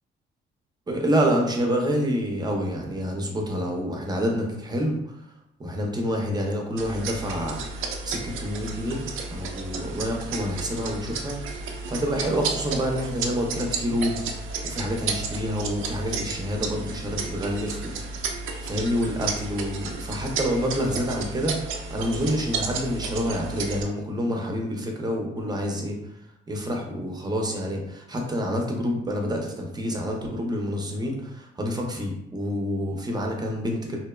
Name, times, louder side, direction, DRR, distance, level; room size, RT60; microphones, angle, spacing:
voice 1, 0.9-5.0 5.6-17.9 18.6-26.0 26.5-34.0, equal, 20° right, 1 dB, 0.5 m, -28 dB
sound 1, 6.8-23.8, right 4 dB, 85° right, 0.4 m, -32 dB
2.7 x 2.1 x 2.2 m, 0.83 s
cardioid pair, 90°, 20 cm